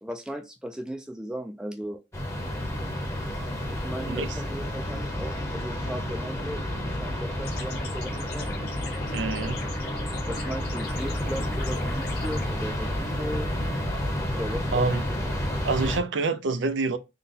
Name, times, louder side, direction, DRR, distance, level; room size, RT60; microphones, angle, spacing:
voice 1, 0.0-2.0 3.7-8.6 10.3-13.5 14.3-15.1, equal, 5° right, 0.3 m, -37 dB
sound 1, 2.1-16.0, left 1 dB, 15° left, 0.9 m, -30 dB
voice 2, 4.0-4.4 9.1-9.6 14.7-15.3 15.6-17.0, right 3 dB, 85° right, 0.5 m, -27 dB
sound 2, 7.4-12.5, left 4 dB, 60° left, 0.9 m, -41 dB
3.8 x 2.2 x 4.0 m
head